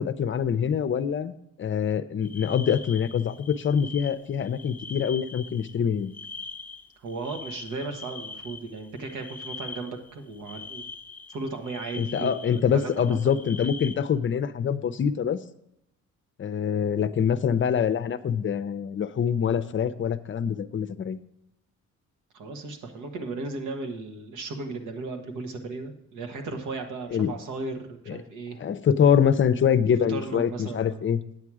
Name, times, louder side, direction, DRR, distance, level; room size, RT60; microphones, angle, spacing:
voice 1, 0.0-6.1 12.0-15.4 16.4-21.2 27.1-27.3 28.1-28.2 28.6-31.2, left 7 dB, 40° left, 12 dB, 0.6 m, -25 dB
sound 1, 2.2-13.9, left 4 dB, 5° left, 0.9 m, -42 dB
voice 2, 7.0-10.8 11.3-13.5 22.3-28.6 30.1-31.0, right 3 dB, 80° right, 5 dB, 1.4 m, -36 dB
9.3 x 7.5 x 4.8 m, 0.81 s
cardioid pair, 90°, 30 cm